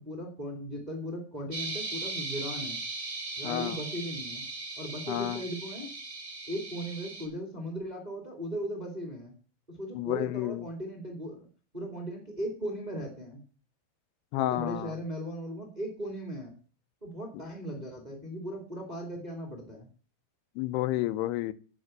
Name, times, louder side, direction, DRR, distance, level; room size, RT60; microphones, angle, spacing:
voice 1, 0.0-2.8 3.4-4.4 4.8-5.9 6.5-9.3 9.7-11.5 11.7-13.4 14.3-16.5 17.0-19.9, equal, 20° right, 1.3 m, -37 dB
sound 1, 1.5-7.3, right 3 dB, 60° right, 0.8 m, -38 dB
voice 2, 3.4-3.8 5.1-5.4 10.0-10.6 14.3-14.9 20.6-21.5, left 15 dB, 85° left, 2.7 m, -30 dB
9.7 x 5.0 x 7.9 m
omnidirectional pair, 4.7 m